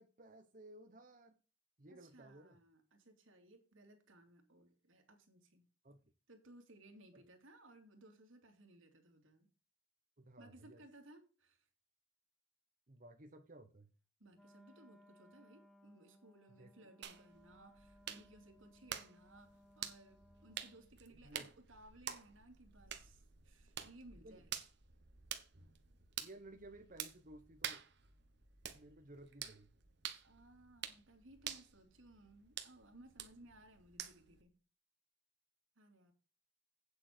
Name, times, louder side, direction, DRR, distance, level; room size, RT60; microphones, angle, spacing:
voice 1, 0.0-1.4 1.8-2.6 5.8-6.0 7.1-7.2 10.2-10.8 12.9-13.9 16.6-16.9 21.1-21.5 24.2-24.4 26.2-27.8 28.7-29.7, right 1 dB, 40° right, 1.0 m, -57 dB
voice 2, 1.9-5.6 6.3-9.5 10.4-11.7 14.2-24.5 30.2-34.6 35.8-36.1, right 1 dB, 80° right, 2.8 m, -61 dB
Wind instrument woodwind instrument, 14.3-21.0, equal, ahead, 0.7 m, -65 dB
sound 1, 17.0-34.4, right 9 dB, 60° right, 1.3 m, -49 dB
9.0 x 7.9 x 4.5 m
head